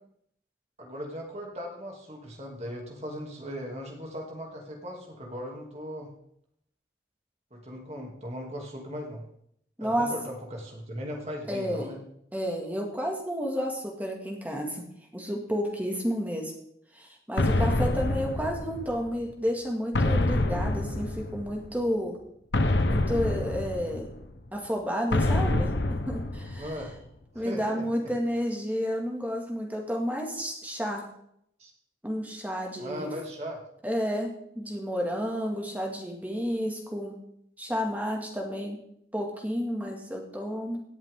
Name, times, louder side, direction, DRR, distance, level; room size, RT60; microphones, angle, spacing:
voice 1, 0.8-6.1 7.5-9.2 9.8-12.0 26.6-26.9 27.3-28.1 31.6-31.7 32.8-33.6, equal, 35° right, 0 dB, 2.7 m, -38 dB
voice 2, 11.5-11.9 12.3-14.8 15.1-16.5 16.9-22.2 22.9-24.1 24.5-25.7 26.1-26.7 27.3-31.0 32.0-33.1 33.8-37.2 37.6-38.8 39.1-40.8, equal, 10° right, 0 dB, 2.1 m, -31 dB
sound 1, 17.4-19.1 19.9-21.7 22.5-24.3 25.1-26.9, left 2 dB, 80° left, 0.9 m, -27 dB
17.5 x 7.9 x 3.7 m, 0.71 s
head